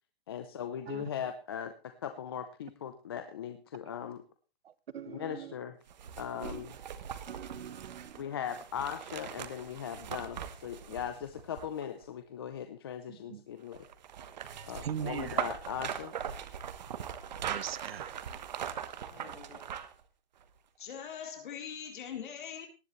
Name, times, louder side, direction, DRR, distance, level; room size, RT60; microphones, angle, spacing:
voice 1, 0.3-1.8 2.0-4.2 5.1-5.8 6.2-6.7 8.2-13.9 14.7-16.1, left 8 dB, 25° left, 0.6 m, -39 dB
voice 2, 0.9-1.3 4.9-5.5 6.4-6.7 7.3-8.2 13.1-13.4 14.5-15.4 17.5-18.1, right 9 dB, 80° right, 1.0 m, -41 dB
sound 1, 5.9-12.1 13.7-20.0 20.4-20.5, right 8 dB, 45° right, 1.2 m, -40 dB
voice 3, 19.0-19.6 20.8-22.7, left 8 dB, 55° left, 3.9 m, -42 dB
18.0 x 10.5 x 3.2 m
hypercardioid pair, 175°, 30 cm